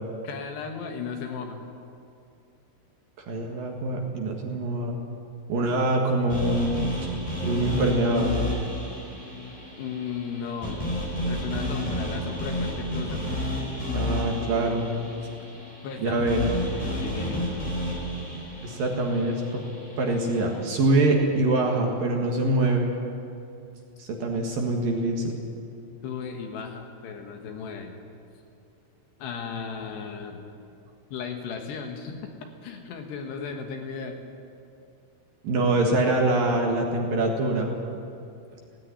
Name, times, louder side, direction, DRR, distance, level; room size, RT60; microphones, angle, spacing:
voice 1, 0.2-1.6 9.8-10.9 11.3-13.3 15.8-16.3 16.7-17.4 26.0-28.0 29.2-30.5 31.1-34.2, left 6 dB, 70° left, 4 dB, 3.3 m, -35 dB
voice 2, 3.3-5.0 5.5-6.8 7.4-8.5 13.9-14.9 16.0-16.5 18.6-19.6 20.0-22.9 24.0-25.4 35.4-37.7, right 2 dB, 60° right, 1 dB, 2.9 m, -24 dB
sound 1, 6.3-20.5, equal, 10° left, 3.4 m, -31 dB
17.0 x 16.5 x 9.9 m, 2.5 s
omnidirectional pair, 5.5 m